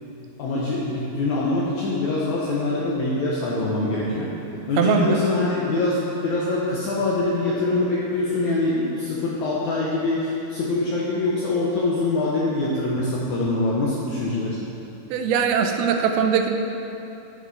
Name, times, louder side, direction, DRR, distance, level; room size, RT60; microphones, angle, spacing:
voice 1, 0.4-4.3 4.7-14.6, left 2 dB, 75° left, -5 dB, 1.7 m, -24 dB
voice 2, 4.8-5.2 15.1-16.5, right 7 dB, 85° right, 4 dB, 2.5 m, -21 dB
10.5 x 6.7 x 4.0 m, 2.9 s
omnidirectional pair, 4.4 m